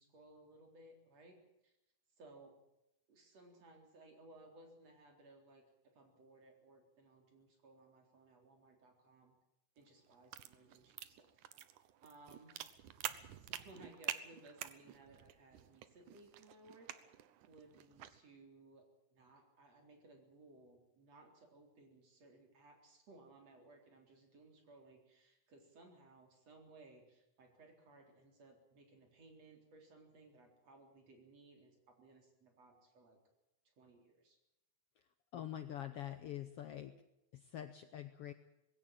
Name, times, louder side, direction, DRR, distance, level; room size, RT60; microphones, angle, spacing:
voice 1, 0.0-1.4 1.6-1.7 2.2-2.5 3.1-9.3 9.8-11.3 12.0-12.6 13.1-16.9 17.5-18.8 19.1-33.2 33.8-34.4, right 2 dB, 55° right, 3 dB, 4.9 m, -61 dB
sound 1, 9.8-18.2, right 12 dB, 85° right, 2.5 m, -48 dB
voice 2, 35.3-37.0 37.3-38.3, left 11 dB, 65° left, 10 dB, 1.5 m, -45 dB
20.5 x 16.5 x 9.0 m, 0.88 s
omnidirectional pair, 3.5 m